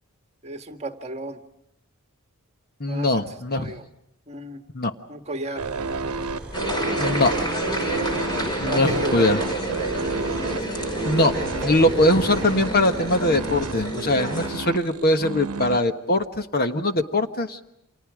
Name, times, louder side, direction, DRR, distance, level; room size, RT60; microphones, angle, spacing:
voice 1, 0.4-1.4 2.9-3.2 3.5-3.9 4.3-4.6 5.1-5.6 8.6-9.2, right 1 dB, 30° right, 6 dB, 1.7 m, -33 dB
voice 2, 2.8-3.7 4.7-4.9 7.0-7.3 8.6-9.4 11.0-11.3 11.6-17.6, left 1 dB, 45° left, 8 dB, 1.4 m, -21 dB
sound 1, 5.6-13.9, right 1 dB, 5° right, 4.9 m, -38 dB
sound 2, 5.6-15.8, right 3 dB, 80° right, 0.9 m, -31 dB
sound 3, 6.5-14.5, right 1 dB, 20° left, 5.7 m, -29 dB
30.0 x 26.5 x 5.0 m, 0.81 s
head